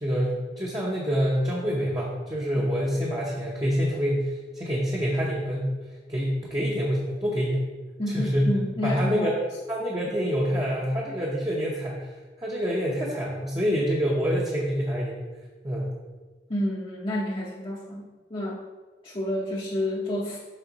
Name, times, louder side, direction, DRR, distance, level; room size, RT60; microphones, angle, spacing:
voice 1, 0.0-5.7 6.1-7.6 8.1-8.4 8.8-9.3 9.7-12.1 12.4-15.2 15.6-15.9, equal, 20° right, -4 dB, 0.8 m, -26 dB
voice 2, 8.0-9.3 16.5-18.6 19.0-20.4, left 1 dB, 30° left, -4 dB, 0.7 m, -29 dB
7.4 x 4.4 x 3.9 m, 1.3 s
head